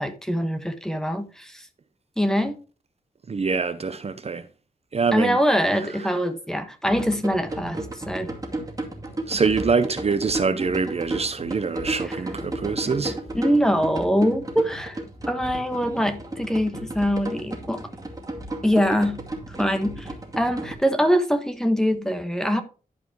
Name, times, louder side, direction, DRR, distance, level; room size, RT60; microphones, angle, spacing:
voice 1, 0.0-1.6 2.2-2.6 5.1-8.3 12.8-15.0 15.3-17.8 18.6-19.2 19.6-22.6, equal, 5° left, 1.2 m, -23 dB
voice 2, 3.3-4.5 4.9-5.4 6.0-6.1 9.3-13.2, right 4 dB, 45° right, 0.7 m, -24 dB
sound 1, 6.9-20.7, right 2 dB, 20° right, 2.4 m, -34 dB
11.5 x 4.9 x 4.6 m
wide cardioid pair, 105°, 15 cm